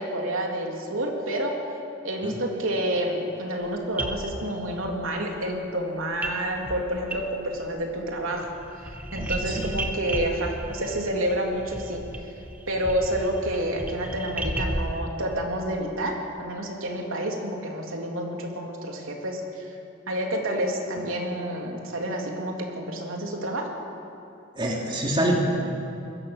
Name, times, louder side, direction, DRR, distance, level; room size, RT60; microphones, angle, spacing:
voice 1, 0.0-1.5 2.0-8.5 9.1-12.0 12.7-19.7 20.1-23.7, right 1 dB, 80° right, 1 dB, 3.5 m, -29 dB
sound 1, 3.6-3.7 4.0-4.9 6.2-6.4 6.6-7.7 8.0-15.0, right 1 dB, 10° right, 1.6 m, -34 dB
voice 2, 9.2-9.7 24.5-25.4, right 1 dB, 25° right, -1 dB, 3.1 m, -26 dB
26.0 x 21.5 x 7.4 m, 2.7 s
head